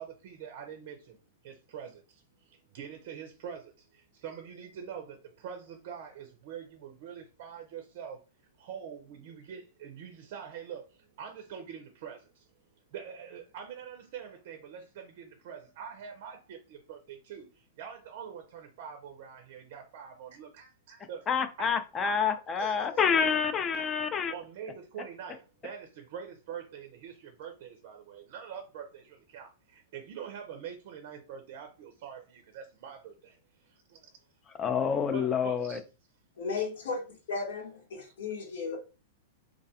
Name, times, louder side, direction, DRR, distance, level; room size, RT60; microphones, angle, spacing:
voice 1, 0.0-8.2 8.5-12.5 12.9-21.3 21.6-21.7 22.0-22.1 22.6-23.0 24.3-34.1 35.1-35.8 36.6-36.7 38.0-38.4, right 8 dB, 55° right, 0.5 m, -45 dB
voice 2, 21.3-24.3 34.6-35.8, left 6 dB, 25° left, 0.4 m, -28 dB
voice 3, 36.4-37.0 37.3-38.8, left 4 dB, 70° left, 0.9 m, -34 dB
2.4 x 2.2 x 2.8 m
hypercardioid pair, 105°, 0 cm